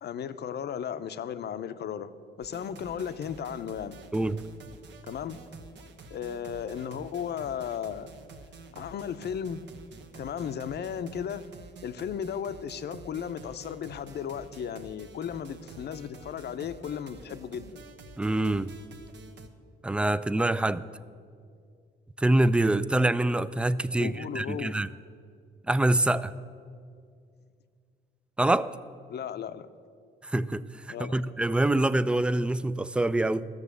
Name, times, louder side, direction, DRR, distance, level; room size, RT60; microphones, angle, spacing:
voice 1, 0.0-2.1 2.4-4.0 5.0-5.4 6.1-8.1 8.7-9.6 10.2-11.5 11.8-17.8 24.0-24.8 29.1-29.7 30.9-31.2, left 8 dB, 55° left, 12 dB, 0.6 m, -35 dB
sound 1, 2.4-19.5, right 3 dB, 65° right, 1.1 m, -49 dB
voice 2, 4.1-4.4 18.2-18.7 19.8-20.8 22.2-24.9 25.7-26.3 28.4-28.8 30.2-33.4, right 1 dB, 5° right, 16 dB, 0.3 m, -25 dB
13.0 x 6.8 x 8.2 m, 2.2 s
cardioid pair, 90°, 20 cm